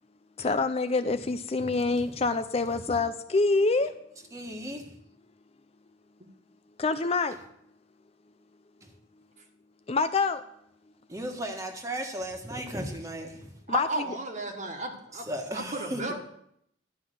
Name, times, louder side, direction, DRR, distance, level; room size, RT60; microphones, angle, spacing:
voice 1, 0.4-3.9 6.8-7.4 9.9-10.4 13.7-14.1, left 3 dB, 30° left, 0.5 m, -26 dB
voice 2, 1.6-2.0 4.3-5.0 8.8-8.9 11.1-13.6 15.3-16.1, equal, 15° right, 1.4 m, -36 dB
voice 3, 13.7-15.2 15.5-16.1, right 2 dB, 40° right, 1.6 m, -33 dB
12.5 x 5.8 x 9.2 m
head